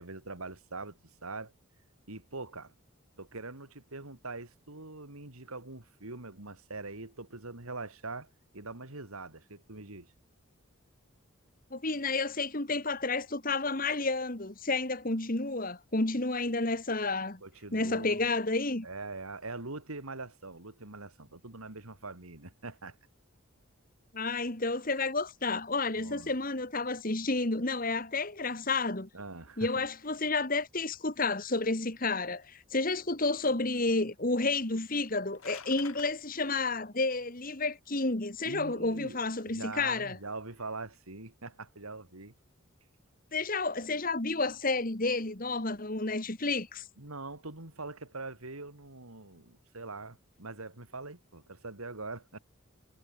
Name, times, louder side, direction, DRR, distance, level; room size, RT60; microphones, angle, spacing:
voice 1, 0.0-1.5 2.1-2.7 3.2-8.3 8.5-10.1 17.4-18.2 18.8-23.0 25.9-26.3 29.1-29.7 38.4-42.3 47.0-52.4, right 3 dB, 85° right, 3.2 m, -43 dB
voice 2, 11.7-17.4 17.7-18.9 24.1-29.1 29.6-40.2 43.3-46.9, left 3 dB, 40° left, 1.9 m, -31 dB
sound 1, 35.0-36.1, left 7 dB, 75° left, 6.4 m, -48 dB
head